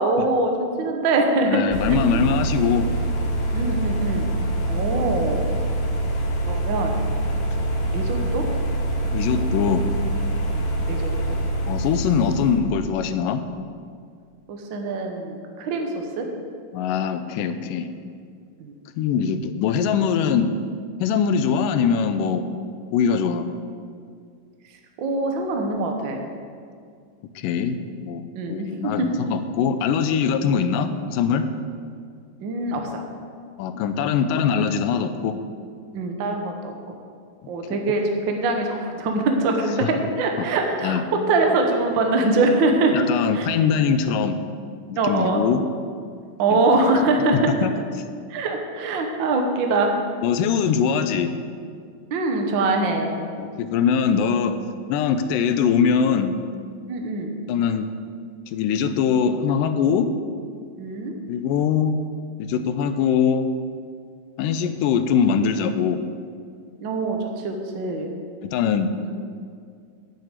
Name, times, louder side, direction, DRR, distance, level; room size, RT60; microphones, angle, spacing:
voice 1, 0.0-1.6 2.1-2.3 3.5-4.3 4.6-5.4 6.5-7.0 7.9-8.5 10.5-11.4 14.5-16.3 18.6-18.7 24.6-24.7 25.0-26.2 28.3-29.1 30.4-30.5 32.4-33.1 35.9-37.0 37.5-41.0 41.3-43.0 43.3-43.5 44.9-45.4 46.4-47.5 48.3-49.9 52.1-53.2 56.9-57.3 60.8-61.1 66.8-68.1 69.0-69.1, right 2 dB, 80° right, 3 dB, 1.0 m, -23 dB
voice 2, 1.5-2.9 9.1-9.9 11.7-13.4 16.7-17.9 19.0-20.5 21.0-22.5 22.9-23.5 27.4-31.5 33.6-35.4 40.8-41.0 42.9-44.4 44.9-45.6 46.5-46.6 47.6-47.7 50.2-51.3 53.4-54.6 54.9-56.3 57.5-57.9 58.5-60.1 61.3-62.0 62.4-63.5 64.4-66.0 68.4-68.9, left 7 dB, 85° left, 9 dB, 2.2 m, -22 dB
sound 1, 1.7-12.6, right 1 dB, 55° left, 1.8 m, -25 dB
8.7 x 6.4 x 8.1 m, 2.2 s
omnidirectional pair, 3.8 m